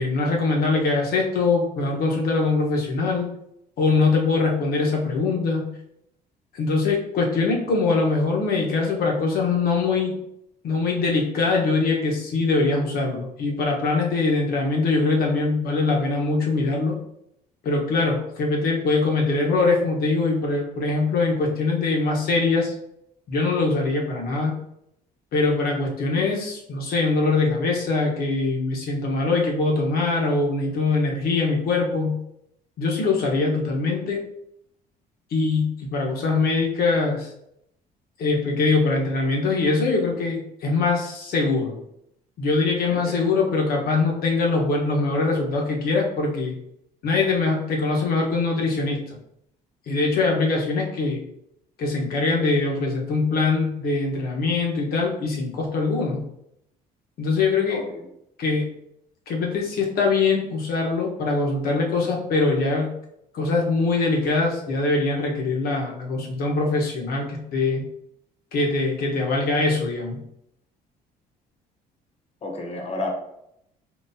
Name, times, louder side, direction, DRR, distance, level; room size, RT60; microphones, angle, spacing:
voice 1, 0.0-3.3 3.8-5.7 6.5-10.1 10.6-17.0 17.6-22.7 23.3-24.6 25.3-32.2 32.8-34.2 35.3-37.3 38.2-41.8 42.4-46.5 47.0-49.0 49.9-51.2 51.8-56.2 57.2-57.8 58.4-58.6 59.3-62.9 63.3-67.8 68.5-70.2, left 3 dB, 65° left, 0 dB, 1.0 m, -22 dB
voice 2, 42.9-43.3 57.7-58.1 72.4-73.1, left 2 dB, 40° left, 2 dB, 0.9 m, -32 dB
3.9 x 3.0 x 2.7 m, 0.77 s
cardioid pair, 110°, 17 cm